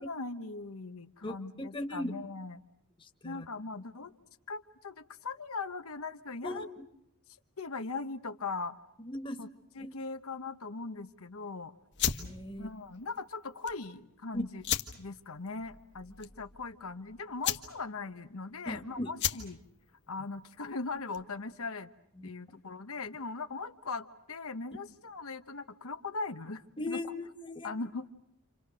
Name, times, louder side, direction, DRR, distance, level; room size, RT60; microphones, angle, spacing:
voice 1, 0.0-2.6 3.2-4.1 4.5-6.7 7.6-8.8 9.4-9.5 9.7-11.7 12.6-14.6 15.0-19.6 20.1-21.9 22.2-27.0 27.6-28.1, left 3 dB, 75° left, 8 dB, 1.2 m, -40 dB
voice 2, 1.2-2.1 3.0-3.5 6.4-6.7 9.0-9.4 9.8-10.0 12.1-12.7 14.3-14.5 18.7-19.1 22.2-22.3 26.8-27.7, left 1 dB, 20° left, 5 dB, 1.7 m, -38 dB
sound 1, 11.9-21.4, left 9 dB, 50° left, 1.6 m, -37 dB
29.5 x 27.5 x 6.4 m, 0.78 s
head